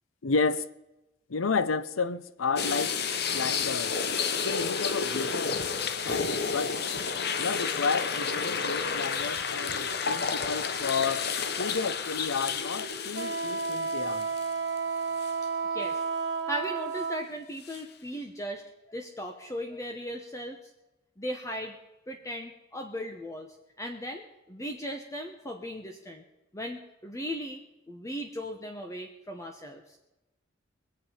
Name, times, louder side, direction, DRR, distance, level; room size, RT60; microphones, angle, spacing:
voice 1, 0.2-0.7 1.3-3.0 3.3-4.0 4.4-5.6 6.0-6.8 7.4-11.3 11.6-14.3, left 4 dB, 90° left, 0.7 m, -31 dB
sound 1, 2.6-14.8 15.2-15.3 17.6-17.8, left 5 dB, 55° left, 0.9 m, -31 dB
Wind instrument woodwind instrument, 13.1-17.3, right 4 dB, 55° right, 1.3 m, -31 dB
voice 2, 16.5-20.6 21.2-21.8 22.1-26.2 26.5-29.8, equal, 15° left, 0.9 m, -37 dB
21.5 x 8.6 x 5.6 m
head